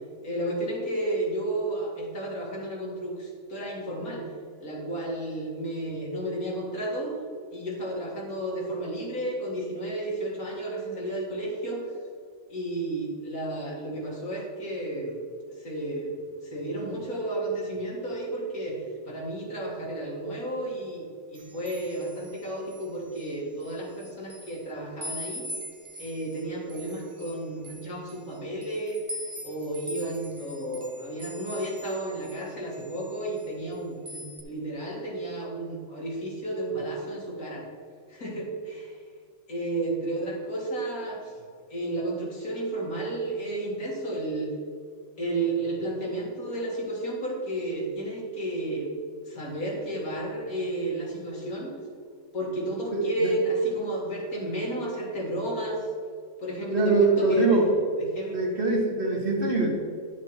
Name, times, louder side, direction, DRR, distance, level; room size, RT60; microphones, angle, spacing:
voice 1, 0.2-4.3 4.6-7.2 7.5-11.9 12.5-15.2 15.6-16.1 16.4-18.8 19.0-21.1 21.3-25.5 26.0-29.0 29.4-37.6 38.1-38.9 39.5-41.3 41.7-44.5 45.2-48.9 49.2-51.7 52.3-55.9 56.4-57.6 58.0-58.4, right 1 dB, 80° left, -4 dB, 2.8 m, -32 dB
sound 1, 21.3-23.3 23.6-24.6 25.0-32.4 32.7-33.7 34.1-34.4, equal, 30° right, 1.0 m, -42 dB
voice 2, 52.9-53.3 56.7-57.7 58.3-59.7, right 3 dB, 50° right, -1 dB, 1.7 m, -23 dB
11.5 x 6.1 x 4.4 m, 2.1 s
omnidirectional pair, 1.5 m